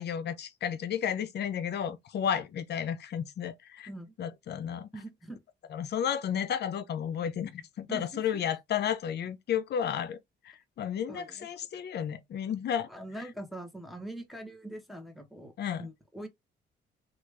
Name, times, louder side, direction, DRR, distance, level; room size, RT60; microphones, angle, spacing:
voice 1, 0.0-3.9 4.2-4.9 5.7-10.2 10.4-12.9 15.6-15.8, left 8 dB, 55° left, 0.6 m, -32 dB
voice 2, 4.9-5.4 7.9-8.4 11.1-11.5 12.9-16.3, right 1 dB, ahead, 1.0 m, -43 dB
3.0 x 2.3 x 3.2 m
cardioid pair, 90°, 20 cm